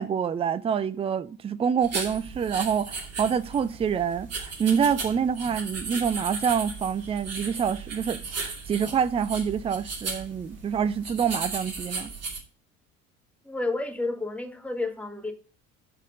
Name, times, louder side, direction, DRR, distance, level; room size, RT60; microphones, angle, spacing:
voice 1, 0.0-12.1, right 7 dB, 15° right, 0.5 m, -27 dB
sound 1, 1.8-12.4, right 4 dB, 35° right, 2.5 m, -36 dB
voice 2, 13.4-15.3, left 2 dB, 5° left, 1.4 m, -30 dB
12.5 x 4.3 x 5.2 m
figure-of-eight pair, 60°, 41 cm